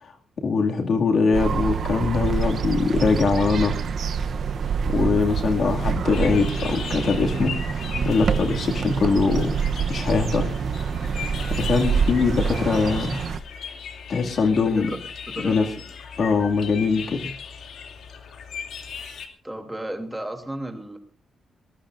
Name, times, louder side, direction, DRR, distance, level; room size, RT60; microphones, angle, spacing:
voice 1, 0.0-3.8 4.9-9.6 9.9-10.5 11.5-13.2 14.1-14.9 15.4-15.7 16.2-17.3, left 4 dB, 55° left, 3 dB, 2.3 m, -22 dB
sound 1, 1.3-13.4, right 6 dB, 55° right, 0.8 m, -26 dB
sound 2, 6.1-19.3, left 6 dB, 75° left, 2.7 m, -38 dB
voice 2, 14.5-15.0 15.3-15.8 19.4-21.0, right 1 dB, 5° right, 5 dB, 2.9 m, -33 dB
22.5 x 20.0 x 2.6 m, 0.34 s
cardioid pair, 130°, 0 cm